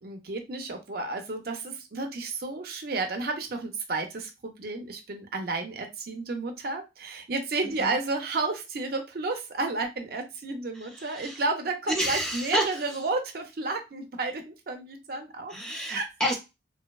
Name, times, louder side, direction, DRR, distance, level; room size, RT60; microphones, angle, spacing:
voice 1, 0.0-15.5 15.9-16.1, right 3 dB, 55° right, 5 dB, 0.5 m, -32 dB
voice 2, 10.9-11.4 12.0-12.7 15.5-16.3, equal, 5° left, -1 dB, 0.6 m, -29 dB
2.6 x 2.1 x 2.2 m, 0.24 s
head